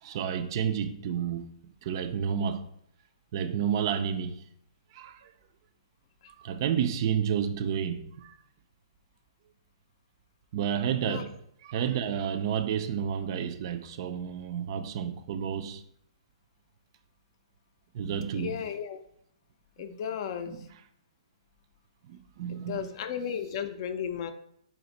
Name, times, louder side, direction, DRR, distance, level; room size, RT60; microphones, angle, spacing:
voice 1, 0.0-2.7 3.3-4.4 4.9-5.3 6.4-8.3 10.5-15.8 17.9-18.6 19.9-20.0 20.5-20.8 22.1-22.9, right 8 dB, 45° right, 0.3 m, -31 dB
voice 2, 18.3-19.0 19.8-20.6 22.5-24.3, left 8 dB, 50° left, 0.4 m, -34 dB
4.2 x 2.5 x 3.9 m
hypercardioid pair, 135°, 3 cm